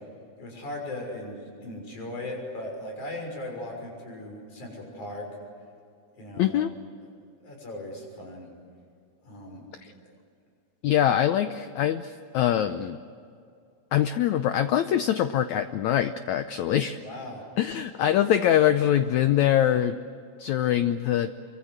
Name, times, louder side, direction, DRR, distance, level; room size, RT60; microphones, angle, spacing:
voice 1, 0.4-5.3 6.2-6.7 7.4-8.5 9.2-9.6 17.0-17.5, left 1 dB, 55° left, 1 dB, 7.6 m, -38 dB
voice 2, 6.4-6.7 10.8-13.0 13.9-17.0 17.6-20.0 20.4-21.3, left 11 dB, 85° left, 10 dB, 1.6 m, -23 dB
27.5 x 24.0 x 8.0 m, 2.4 s
omnidirectional pair, 4.3 m